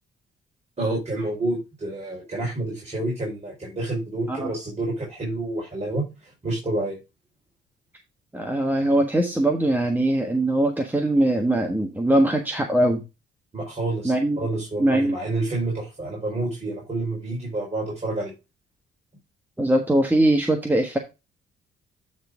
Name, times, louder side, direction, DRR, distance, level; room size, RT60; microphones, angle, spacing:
voice 1, 0.8-7.0 13.5-18.3, right 2 dB, 35° right, -3 dB, 4.4 m, -29 dB
voice 2, 8.3-13.0 14.0-14.4 14.8-15.2 19.6-21.0, right 1 dB, 10° right, 4 dB, 1.3 m, -21 dB
9.4 x 4.1 x 4.7 m, 0.26 s
cardioid pair, 90°, 20 cm